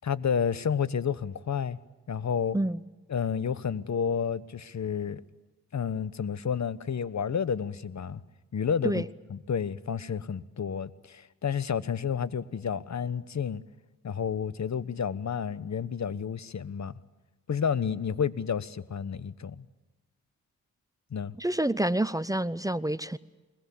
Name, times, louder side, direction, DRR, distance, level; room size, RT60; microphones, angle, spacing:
voice 1, 0.0-1.8 2.1-2.6 3.1-5.2 5.7-8.2 8.5-9.0 9.3-13.6 14.0-17.0 17.5-19.6 21.1-21.3, left 7 dB, 45° left, 17 dB, 1.2 m, -30 dB
voice 2, 21.3-23.2, right 1 dB, 10° right, 16 dB, 0.8 m, -28 dB
23.5 x 21.0 x 8.5 m, 1.2 s
supercardioid pair, 45°, 37 cm